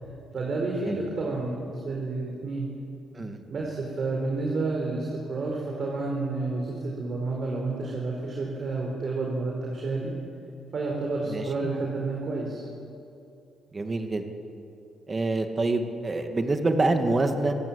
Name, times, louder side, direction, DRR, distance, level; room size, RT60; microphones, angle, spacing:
voice 1, 0.0-2.7 3.5-10.1 10.7-12.7, right 3 dB, 50° right, -1 dB, 4.4 m, -30 dB
voice 2, 11.3-11.7 13.7-14.2 15.1-17.5, right 2 dB, 30° right, 5 dB, 2.3 m, -26 dB
25.5 x 15.5 x 8.8 m, 2.6 s
cardioid pair, 90°, 0 cm